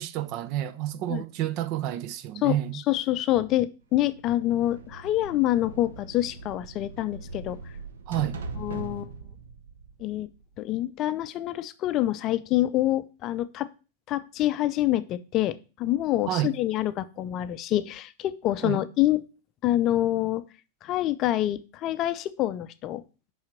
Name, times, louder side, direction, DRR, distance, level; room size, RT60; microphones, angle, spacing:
voice 1, 0.0-2.8 8.1-8.4 16.3-16.6 18.6-18.8, right 13 dB, 40° right, 0.5 m, -29 dB
voice 2, 2.9-7.6 8.6-9.1 10.0-10.3 10.6-13.7 14.1-19.2 19.6-20.4 20.8-23.0, left 14 dB, 35° left, 0.5 m, -26 dB
sound 1, 4.0-10.8, right 3 dB, 65° right, 0.9 m, -41 dB
5.7 x 5.6 x 5.8 m
figure-of-eight pair, 90°, 0 cm